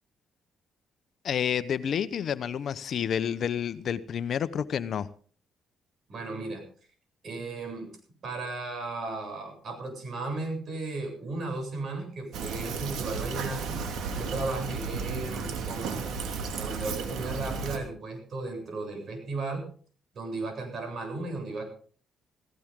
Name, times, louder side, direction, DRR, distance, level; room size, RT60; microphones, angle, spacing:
voice 1, 1.2-5.1, left 8 dB, 60° left, 0.9 m, -29 dB
voice 2, 6.1-6.6 7.2-7.9 8.2-13.8 14.1-16.0 16.6-19.6 20.1-21.7, right 3 dB, 55° right, 7.9 m, -35 dB
Fill (with liquid), 12.3-17.8, right 5 dB, 80° right, 2.8 m, -34 dB
17.0 x 17.0 x 3.8 m
cardioid pair, 90°, 0 cm